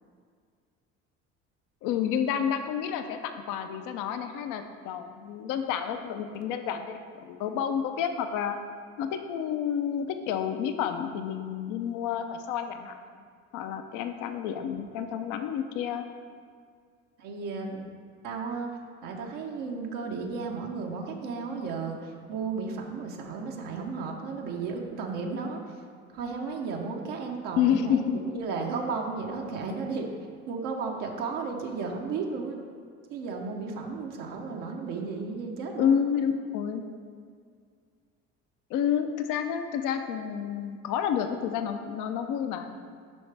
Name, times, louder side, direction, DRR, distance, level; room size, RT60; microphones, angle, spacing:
voice 1, 1.8-8.6 9.0-13.0 13.5-16.1 27.6-28.2 35.8-36.8 38.7-42.7, left 8 dB, 75° left, 7 dB, 0.6 m, -29 dB
voice 2, 17.2-17.9 18.2-25.8 26.1-30.1 30.5-32.6 33.1-36.0, right 4 dB, 80° right, 0 dB, 0.9 m, -34 dB
8.4 x 5.6 x 3.4 m, 2.1 s
supercardioid pair, 85°, 32 cm